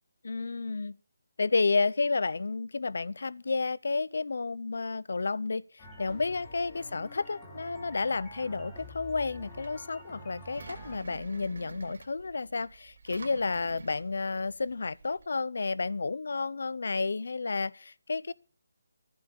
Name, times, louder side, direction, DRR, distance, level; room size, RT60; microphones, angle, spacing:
voice 1, 0.2-1.0 1.4-18.3, left 4 dB, 65° left, 0.5 m, -31 dB
sound 1, 5.8-11.0, left 1 dB, 15° left, 2.9 m, -47 dB
Engine, 9.1-15.3, right 4 dB, 65° right, 2.7 m, -48 dB
14.5 x 7.1 x 8.1 m
hypercardioid pair, 170°, 0 cm